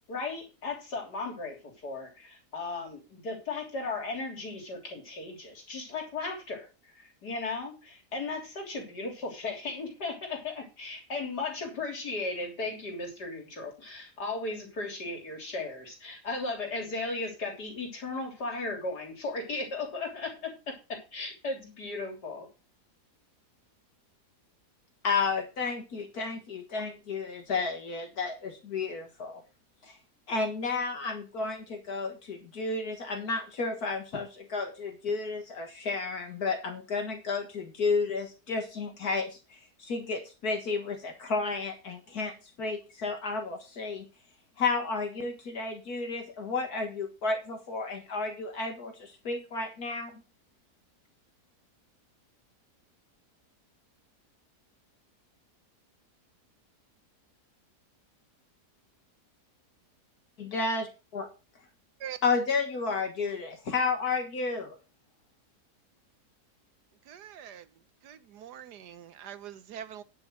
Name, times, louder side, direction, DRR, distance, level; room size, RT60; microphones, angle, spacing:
voice 1, 0.1-6.7 7.0-22.5, left 3 dB, 85° left, 3.9 m, -36 dB
voice 2, 25.0-29.4 29.9-30.0 30.3-42.3 42.6-44.1 44.6-50.2 60.4-60.9 61.1-61.3 62.2-64.8, left 4 dB, 70° left, 2.2 m, -32 dB
voice 3, 67.1-67.7 68.0-70.0, right 9 dB, 85° right, 1.5 m, -43 dB
10.0 x 6.2 x 6.3 m
omnidirectional pair, 1.7 m